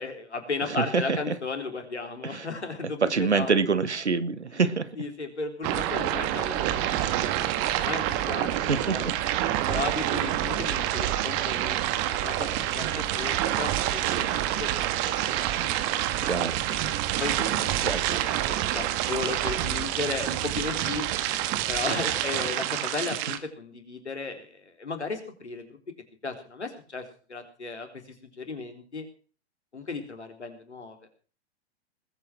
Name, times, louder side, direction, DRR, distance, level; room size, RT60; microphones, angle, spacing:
voice 1, 0.0-3.6 4.6-4.7 5.0-9.1 9.7-11.8 12.1-15.9 17.2-21.0 21.7-25.8 26.2-27.0 27.3-27.9 28.2-29.1 29.7-31.0, left 4 dB, 85° left, 6 dB, 3.9 m, -35 dB
voice 2, 0.8-1.4 2.2-2.5 3.0-4.9 8.6-9.1 16.2-16.6 17.8-18.0, right 5 dB, 85° right, 15 dB, 1.5 m, -26 dB
sound 1, 5.6-23.4, right 13 dB, 40° right, 1.7 m, -27 dB
20.0 x 8.9 x 6.0 m, 0.40 s
figure-of-eight pair, 105°, 33 cm